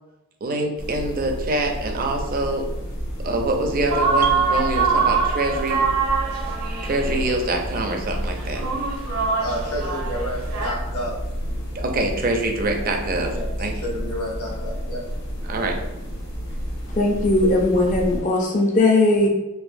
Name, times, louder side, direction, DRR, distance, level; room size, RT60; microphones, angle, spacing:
voice 1, 0.4-2.7 3.2-5.8 6.8-8.6 11.7-13.7 15.4-15.8, right 2 dB, 40° right, 3 dB, 0.5 m, -25 dB
sound 1, 0.8-18.2, equal, 55° left, 1.2 m, -31 dB
sound 2, 3.9-10.7, right 5 dB, 75° right, 0.9 m, -24 dB
voice 2, 9.4-11.2 13.3-15.0, left 1 dB, 75° left, -4 dB, 1.1 m, -30 dB
voice 3, 16.9-19.3, left 2 dB, 35° left, 0 dB, 0.6 m, -18 dB
4.7 x 2.5 x 2.6 m, 1.0 s
head